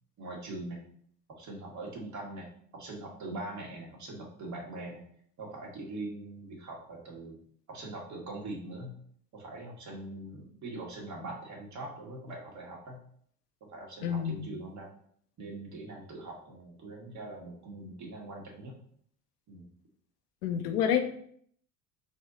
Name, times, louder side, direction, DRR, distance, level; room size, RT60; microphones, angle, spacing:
voice 1, 0.2-0.8 1.4-2.5 2.7-5.0 5.4-7.4 7.7-8.9 9.3-13.0 13.7-14.9 15.4-18.8 19.5-19.7, right 2 dB, 35° right, -1 dB, 1.5 m, -42 dB
voice 2, 14.0-14.4 20.4-21.0, left 8 dB, 75° left, 7 dB, 0.7 m, -28 dB
4.1 x 2.8 x 3.9 m, 0.63 s
figure-of-eight pair, 65°, 49 cm